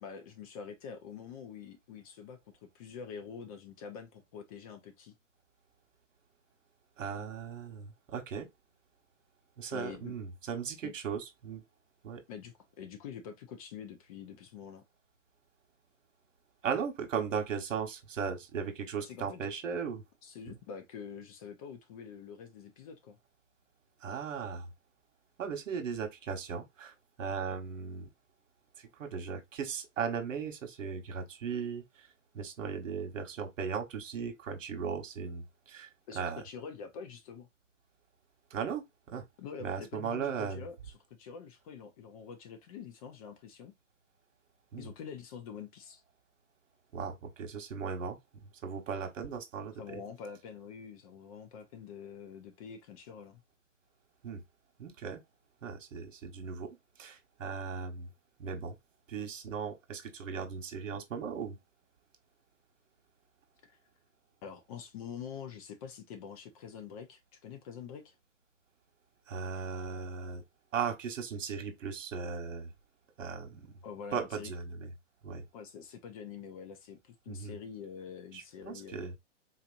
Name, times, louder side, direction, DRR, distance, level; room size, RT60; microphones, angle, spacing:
voice 1, 0.0-2.4 2.7-5.1 9.7-10.1 10.8-10.9 12.3-14.8 19.1-19.5 20.2-23.2 36.1-37.5 39.4-43.7 44.8-46.0 49.8-53.4 63.7-63.8 64.4-68.1 73.8-74.5 75.5-79.2, left 7 dB, 30° left, 0.6 m, -46 dB
voice 2, 7.0-8.5 9.6-11.6 12.0-12.2 16.6-20.0 20.5-20.6 24.0-24.7 25.4-28.1 28.8-32.1 32.3-35.9 36.1-36.4 38.5-39.2 39.6-40.6 44.7-44.9 46.9-48.2 48.6-50.0 54.2-54.4 54.8-55.2 55.6-58.1 58.4-58.8 59.1-61.6 69.3-70.4 70.7-72.7 73.2-73.7 74.1-74.9 75.2-75.4 77.3-77.6 78.3-79.1, right 6 dB, 80° right, 1.3 m, -37 dB
4.1 x 2.9 x 2.5 m
hypercardioid pair, 155°, 37 cm